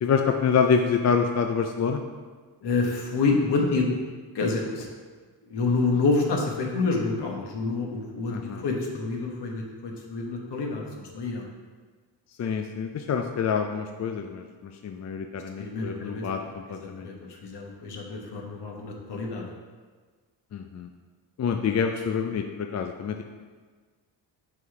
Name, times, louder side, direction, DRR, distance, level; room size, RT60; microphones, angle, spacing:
voice 1, 0.0-2.0 8.3-8.6 12.4-17.1 20.5-20.9 21.4-23.2, left 6 dB, 40° left, 5 dB, 0.4 m, -27 dB
voice 2, 2.6-4.0 4.3-4.9 5.5-11.4 15.6-16.2 17.0-17.1 17.4-19.4, left 3 dB, 60° left, 0 dB, 1.3 m, -27 dB
6.0 x 4.0 x 4.6 m, 1.5 s
cardioid pair, 80°, 46 cm